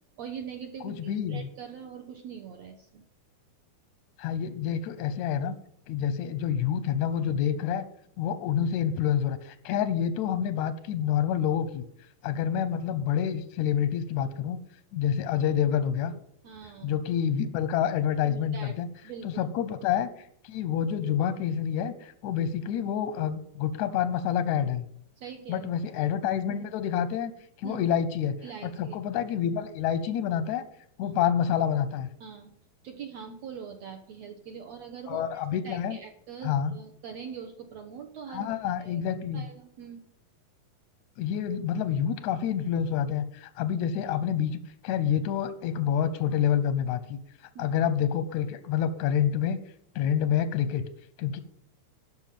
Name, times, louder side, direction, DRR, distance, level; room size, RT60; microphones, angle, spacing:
voice 1, 0.2-3.0 16.4-16.9 18.2-19.3 25.2-25.7 27.6-27.8 28.4-29.0 31.0-31.1 32.2-32.5 32.8-38.5 38.8-39.0 39.3-40.0 47.5-47.7, right 7 dB, 65° right, 4 dB, 1.8 m, -43 dB
voice 2, 0.8-1.5 4.2-5.5 5.9-7.8 8.2-11.8 12.2-14.6 14.9-16.1 16.8-18.9 19.2-24.9 25.5-27.3 27.6-28.3 28.6-30.6 31.0-32.1 35.1-36.0 36.4-36.7 38.3-39.4 41.2-47.2 47.6-49.6 49.9-50.8 51.2-51.4, left 9 dB, 80° left, 12 dB, 1.7 m, -28 dB
12.0 x 6.2 x 7.6 m, 0.71 s
omnidirectional pair, 4.1 m